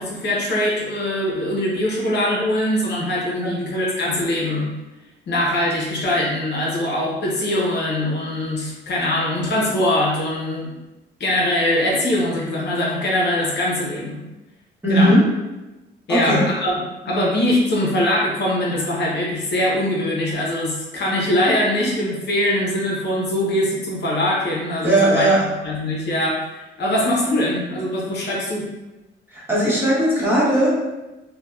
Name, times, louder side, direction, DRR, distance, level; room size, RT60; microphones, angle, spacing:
voice 1, 0.0-4.7 5.3-10.7 11.2-14.2 14.9-15.1 16.1-16.7 17.0-25.3 25.6-28.7, left 1 dB, 60° left, -4 dB, 0.7 m, -22 dB
voice 2, 14.8-15.2 16.1-16.5 24.8-25.4 29.3-30.7, right 1 dB, 10° right, -8 dB, 1.0 m, -17 dB
2.7 x 2.1 x 2.3 m, 1.0 s
cardioid pair, 90°, 20 cm